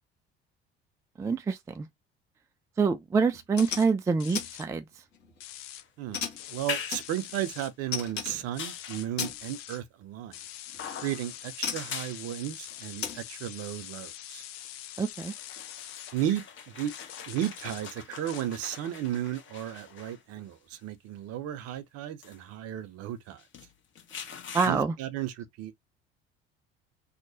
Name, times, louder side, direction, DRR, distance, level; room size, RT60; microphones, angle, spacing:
voice 1, 1.2-1.9 2.8-4.8 15.0-15.3 24.5-24.9, right 5 dB, 10° right, 0.3 m, -26 dB
sound 1, 3.3-3.9 4.3-4.5 4.9-5.4 6.1-7.5 7.9-8.4 9.2-9.4 10.7-10.8 11.6-11.9 13.0-13.2, left 7 dB, 75° left, 1.3 m, -35 dB
sound 2, 3.6-3.9 4.2-4.7 5.4-5.8 6.4-7.7 8.5-9.8 10.3-16.1 16.9-17.8 18.3-18.4, left 12 dB, 60° left, 0.6 m, -44 dB
sound 3, 5.8-7.7 8.3-9.1 10.8-11.4 11.7-12.2 12.7-12.8 14.6-14.7 15.1-20.4 21.2-21.3 22.2-22.4 23.4-24.7, left 7 dB, 40° left, 1.0 m, -42 dB
voice 2, 6.5-10.4 11.0-14.4 16.1-16.9 17.3-23.4 24.6-25.8, right 12 dB, 50° right, 0.7 m, -34 dB
2.8 x 2.1 x 2.7 m
hypercardioid pair, 65°, 31 cm